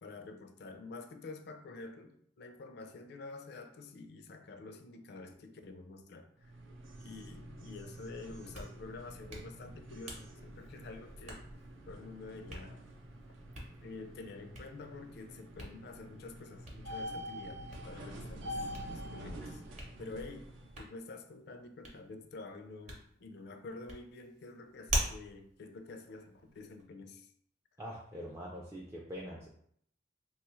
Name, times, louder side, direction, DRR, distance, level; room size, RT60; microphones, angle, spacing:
voice 1, 0.0-6.5 7.0-11.4 11.9-12.8 13.8-19.6 20.0-20.5 20.8-27.3, left 3 dB, 55° left, 6 dB, 0.4 m, -48 dB
sound 1, 6.4-20.8, equal, 80° right, 0.5 m, -47 dB
Hands, 8.3-26.8, right 1 dB, 40° right, 0.7 m, -45 dB
voice 2, 27.8-29.5, equal, 15° right, -4 dB, 0.3 m, -44 dB
3.0 x 2.3 x 3.0 m, 0.65 s
head